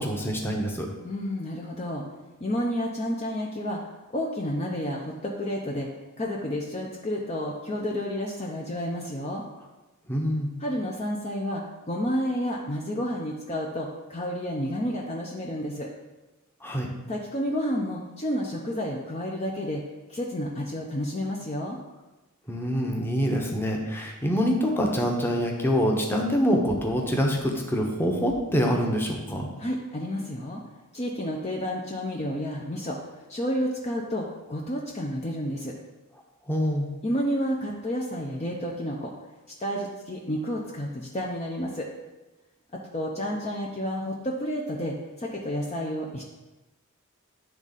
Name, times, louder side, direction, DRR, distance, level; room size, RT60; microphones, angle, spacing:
voice 1, 0.0-0.9 10.1-10.5 16.6-16.9 22.5-29.5 36.5-36.9, equal, 10° left, 0 dB, 1.0 m, -25 dB
voice 2, 1.0-2.0 2.4-3.8 4.1-5.9 6.2-9.4 10.6-15.9 17.1-19.8 20.1-21.8 29.6-30.6 30.9-35.7 37.0-39.1 39.6-41.9 42.9-46.2, equal, 30° left, -2 dB, 0.7 m, -30 dB
10.5 x 3.6 x 4.1 m, 1.1 s
head